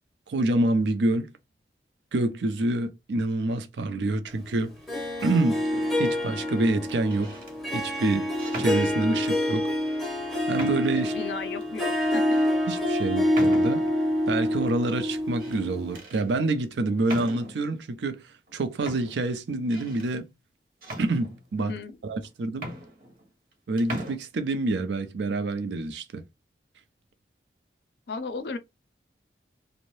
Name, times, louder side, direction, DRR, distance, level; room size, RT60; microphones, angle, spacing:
voice 1, 0.3-1.3 2.1-4.7 5.2-5.6 6.0-7.4 7.7-8.3 8.6-9.6 10.5-11.1 12.7-13.9 14.3-18.2 18.5-20.3 21.0-21.7 22.0-22.6 23.7-26.2, right 2 dB, 80° right, 0.4 m, -27 dB
Harp, 4.9-16.0, left 1 dB, ahead, 0.6 m, -27 dB
sound 1, 5.7-6.1 7.0-7.6 8.4-9.4 10.0-10.1 10.6-11.1 11.6-11.7 12.3-12.5 13.3-14.0 15.1-15.6 15.9-16.3 17.1-17.7 18.5-18.6 18.9-20.1 20.8-21.7 22.2-22.3 22.5-23.5 23.8-24.1, right 1 dB, 50° right, 0.8 m, -39 dB
voice 2, 10.9-12.4 21.6-22.0 28.1-28.6, left 4 dB, 70° left, 0.4 m, -35 dB
2.6 x 2.0 x 3.0 m
head